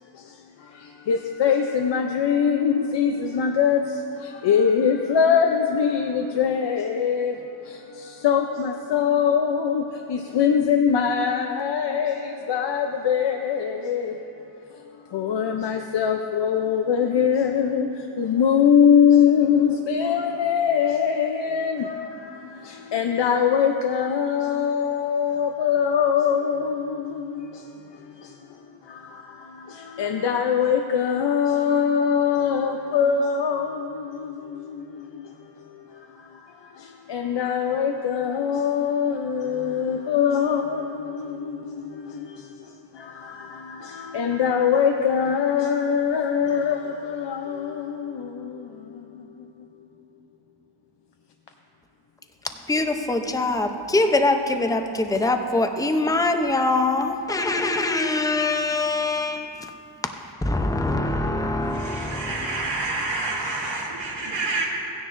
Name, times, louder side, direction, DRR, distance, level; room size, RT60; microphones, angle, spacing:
voice 1, 0.1-14.6 15.1-49.7, left 7 dB, 70° left, 0.7 m, -23 dB
voice 2, 52.7-59.7 60.4-62.7, left 2 dB, 10° left, 0.6 m, -23 dB
voice 3, 61.6-64.6, right 3 dB, 80° right, 1.3 m, -28 dB
15.5 x 9.9 x 2.6 m
cardioid pair, 80°, 44 cm